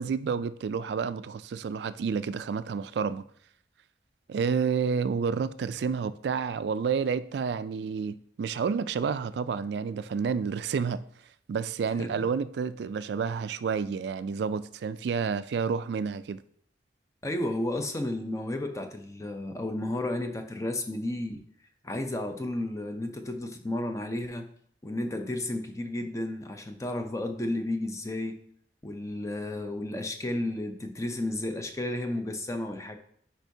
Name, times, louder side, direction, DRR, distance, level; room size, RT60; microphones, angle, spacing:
voice 1, 0.0-3.2 4.3-11.0 11.5-16.4, right 6 dB, 65° right, 0.3 m, -30 dB
voice 2, 17.2-21.4 21.8-24.5 24.8-28.4 28.8-33.0, left 1 dB, 15° left, 0.5 m, -32 dB
9.0 x 4.5 x 2.7 m
head